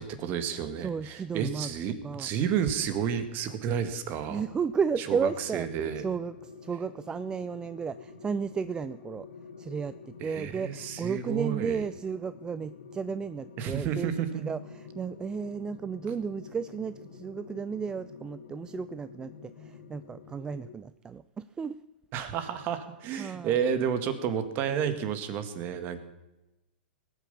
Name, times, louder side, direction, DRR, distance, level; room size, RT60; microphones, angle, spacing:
voice 1, 0.0-4.4 5.0-6.1 10.2-11.8 13.6-14.5 22.1-26.0, right 8 dB, 35° right, 10 dB, 1.9 m, -31 dB
voice 2, 0.8-1.7 2.0-2.3 4.3-5.7 6.0-9.3 9.6-14.1 14.5-21.8 23.2-23.6, right 6 dB, 15° right, 15 dB, 0.4 m, -33 dB
sound 1, 4.5-20.7, left 5 dB, 80° left, 3.0 m, -48 dB
19.5 x 9.1 x 7.0 m, 0.98 s
hypercardioid pair, 125°, 6 cm